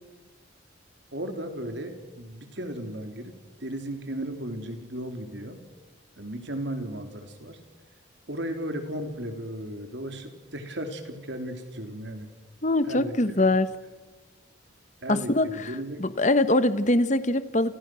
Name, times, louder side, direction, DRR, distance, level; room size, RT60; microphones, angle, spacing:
voice 1, 1.1-5.6 6.2-7.6 8.3-12.3 12.8-13.5 15.0-16.0, right 1 dB, 60° right, 6 dB, 3.7 m, -35 dB
voice 2, 12.6-13.7 15.1-15.7 16.0-17.7, left 2 dB, 35° left, 13 dB, 1.2 m, -23 dB
30.0 x 29.0 x 6.4 m, 1.2 s
head